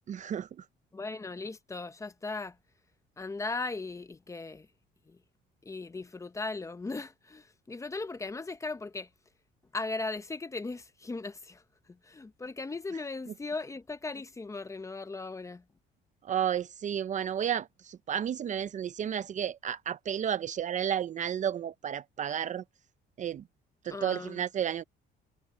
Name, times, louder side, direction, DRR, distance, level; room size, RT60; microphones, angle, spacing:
voice 1, 0.1-0.5 16.3-22.6 23.2-23.4 23.8-24.8, right 9 dB, 40° right, 0.5 m, -32 dB
voice 2, 0.9-2.6 3.2-4.7 5.1-5.2 5.6-9.1 9.7-15.6 23.9-24.4, left 3 dB, 15° left, 0.7 m, -38 dB
cardioid pair, 130°, 20 cm